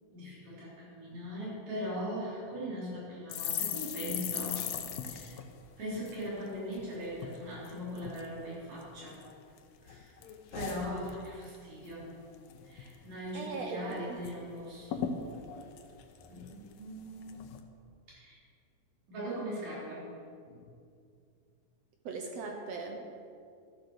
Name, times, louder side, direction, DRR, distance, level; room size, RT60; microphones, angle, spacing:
voice 1, 0.1-4.7 5.0-5.4 5.8-9.2 9.8-10.1 10.5-12.1 12.6-15.1 16.3-17.5 18.1-18.4 19.1-20.1 20.5-20.6, equal, 55° right, -8 dB, 5.1 m, -40 dB
sound 1, 3.3-6.8 7.2-7.4 7.6-8.3 8.8-9.6 9.9-11.6 11.9-12.1 12.3-12.9 13.3-13.4 13.6-14.3 14.6-14.7 14.9-16.8 17.3-17.6, left 9 dB, 85° left, 1.4 m, -39 dB
voice 2, 13.3-14.2 22.0-23.1, right 4 dB, 70° right, 2 dB, 1.5 m, -39 dB
12.5 x 7.6 x 6.5 m, 2.4 s
omnidirectional pair, 4.0 m